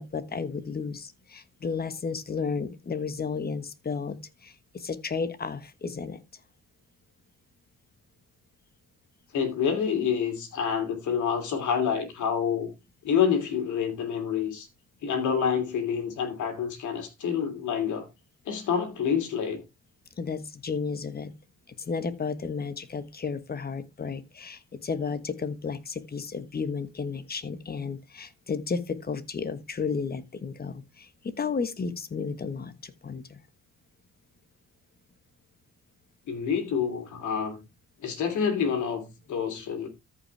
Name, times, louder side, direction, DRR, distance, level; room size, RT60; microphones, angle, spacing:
voice 1, 0.0-6.2 20.2-21.3 21.7-33.4, left 5 dB, 30° left, 1.3 m, -33 dB
voice 2, 9.3-12.7 13.0-14.7 15.0-18.1 18.5-19.6 36.3-37.6 38.0-39.9, left 7 dB, 75° left, 3.0 m, -27 dB
13.5 x 5.6 x 3.4 m
cardioid pair, 90°, 30 cm